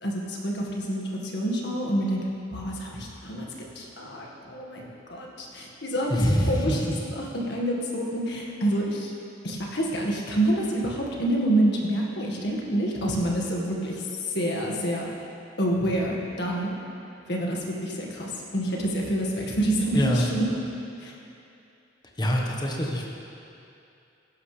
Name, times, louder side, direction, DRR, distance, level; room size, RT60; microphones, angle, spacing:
voice 1, 0.0-3.5 3.8-6.2 6.5-6.9 7.2-9.1 9.4-13.9 14.3-15.1 15.6-16.8 17.3-20.5 21.0-21.1, right 1 dB, 60° left, -2 dB, 1.8 m, -27 dB
voice 2, 6.1-7.0 19.9-20.3 22.2-23.1, equal, 20° left, -1 dB, 1.3 m, -24 dB
15.5 x 11.5 x 3.4 m, 2.7 s
head